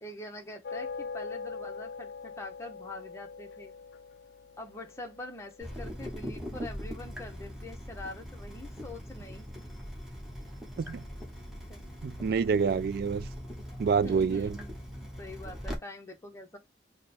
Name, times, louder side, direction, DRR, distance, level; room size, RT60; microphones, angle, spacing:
voice 1, 0.0-3.7 4.6-9.5 11.7-11.9 14.0-16.6, left 2 dB, 15° left, 0.7 m, -44 dB
sound 1, 0.6-6.1, left 5 dB, 65° left, 0.3 m, -42 dB
Water tap faucet / Drip, 5.6-15.8, equal, 5° right, 1.0 m, -41 dB
voice 2, 12.0-13.3 13.8-14.6, right 5 dB, 55° right, 0.3 m, -27 dB
3.7 x 2.1 x 4.1 m
head